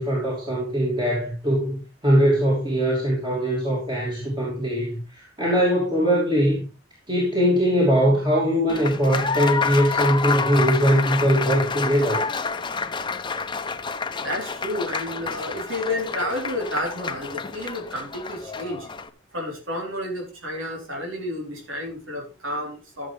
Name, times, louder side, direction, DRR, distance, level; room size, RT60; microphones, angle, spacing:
voice 1, 0.0-6.7 7.1-12.2, equal, 25° right, 3.0 m, -21 dB
Applause, 8.7-19.1, left 5 dB, 25° left, 0.7 m, -29 dB
voice 2, 14.2-18.9 19.3-23.1, left 1 dB, 90° right, 3.8 m, -31 dB
14.5 x 7.3 x 3.4 m
head